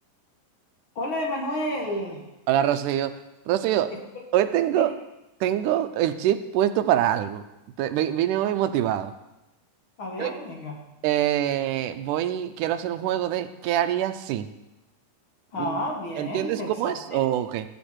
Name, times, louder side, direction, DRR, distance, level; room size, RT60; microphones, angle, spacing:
voice 1, 1.0-2.2 3.9-4.0 4.7-4.9 10.0-10.7 15.5-17.2, left 1 dB, 45° left, -1 dB, 2.2 m, -31 dB
voice 2, 2.5-3.1 3.5-3.9 4.3-4.9 5.4-7.4 7.8-9.1 10.2-10.3 11.0-14.5 15.6-15.8 16.2-17.6, right 11 dB, 80° right, 9 dB, 2.1 m, -24 dB
16.5 x 8.1 x 4.4 m, 0.96 s
omnidirectional pair, 3.9 m